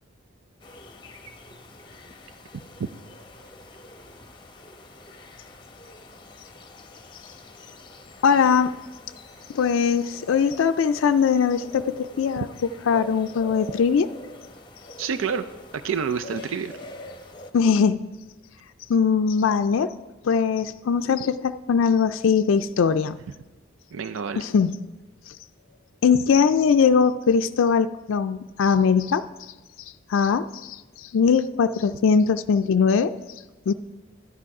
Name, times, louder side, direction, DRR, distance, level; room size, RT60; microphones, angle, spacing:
sound 1, 0.6-17.5, left 2 dB, 25° left, 0.8 m, -45 dB
voice 1, 8.2-8.7 9.5-12.5 12.9-14.1 17.5-18.0 18.9-19.9 20.2-23.2 24.4-24.8 25.3-25.4 26.0-29.5 30.1-33.1 33.7-33.8, left 6 dB, 80° left, 9 dB, 0.4 m, -21 dB
voice 2, 15.0-15.4 15.7-16.7 23.9-24.4, right 6 dB, 85° right, 10 dB, 0.5 m, -28 dB
11.5 x 10.0 x 4.8 m, 1.1 s
head